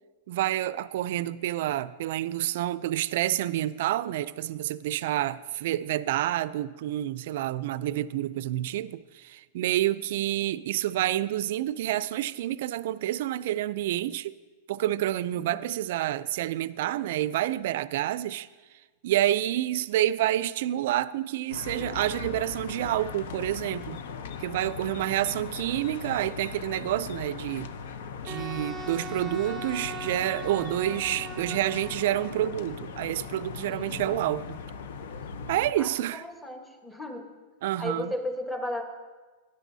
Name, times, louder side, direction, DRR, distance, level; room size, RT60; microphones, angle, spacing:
voice 1, 0.3-14.3 14.7-18.5 19.0-24.0 24.4-27.7 28.2-34.6 35.5-36.2 37.6-38.1, right 13 dB, 65° right, 0.3 m, -28 dB
voice 2, 15.4-15.7 33.7-34.0 35.8-37.3 37.8-38.9, left 1 dB, 5° left, 1.2 m, -35 dB
sound 1, 21.5-35.7, left 6 dB, 75° left, 0.7 m, -39 dB
Wind instrument woodwind instrument, 28.3-32.6, right 2 dB, 15° right, 0.6 m, -40 dB
16.5 x 10.5 x 2.7 m
hypercardioid pair, 135°, 0 cm